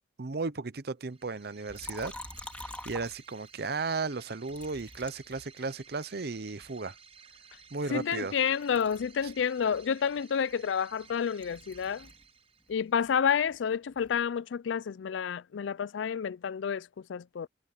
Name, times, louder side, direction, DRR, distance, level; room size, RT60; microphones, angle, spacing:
voice 1, 0.2-2.2 2.6-7.0 7.7-8.4 9.2-9.3, right 4 dB, 60° right, 0.8 m, -35 dB
sound 1, 1.0-13.0, right 6 dB, 35° right, 6.5 m, -56 dB
Liquid, 1.7-3.7 4.5-6.0 6.6-8.3 8.6-12.3 12.6-14.2, left 1 dB, 5° left, 2.5 m, -47 dB
voice 2, 7.9-12.1 12.7-17.5, left 7 dB, 90° left, 0.4 m, -30 dB
head